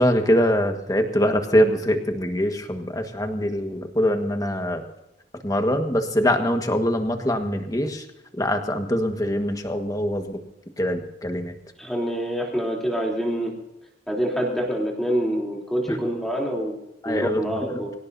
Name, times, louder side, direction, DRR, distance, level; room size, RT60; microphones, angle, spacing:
voice 1, 0.0-4.8 5.4-8.0 8.3-10.4 10.8-11.5 15.9-16.0 17.0-17.4, equal, 20° left, 5 dB, 1.6 m, -23 dB
voice 2, 11.8-13.5 14.1-16.7 17.0-17.9, equal, ahead, -2 dB, 3.4 m, -26 dB
24.0 x 17.0 x 2.8 m, 0.88 s
head